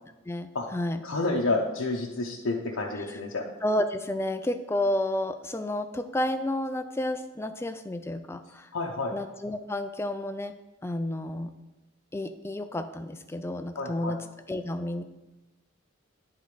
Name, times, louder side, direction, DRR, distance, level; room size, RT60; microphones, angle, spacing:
voice 1, 0.3-1.0 2.9-3.2 3.6-8.7 9.1-10.5 10.8-11.5 12.1-15.0, left 1 dB, 10° left, 9 dB, 0.3 m, -31 dB
voice 2, 1.0-3.4 8.7-9.1 13.8-14.1, left 2 dB, 85° left, -2 dB, 0.7 m, -29 dB
9.9 x 3.8 x 4.9 m, 1.1 s
head